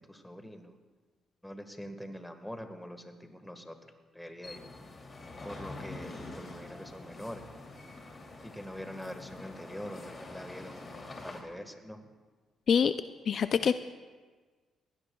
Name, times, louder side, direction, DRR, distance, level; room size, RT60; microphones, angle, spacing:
voice 1, 0.1-0.8 1.4-3.8 4.1-4.7 5.4-7.4 8.4-10.9 11.2-12.0 13.6-13.7, equal, 5° left, 6 dB, 1.5 m, -44 dB
sound 1, 4.4-11.4, left 2 dB, 35° left, 2.7 m, -46 dB
voice 2, 13.3-13.7, left 7 dB, 55° left, 11 dB, 0.4 m, -24 dB
21.0 x 17.0 x 2.3 m, 1.4 s
cardioid pair, 90°, 0 cm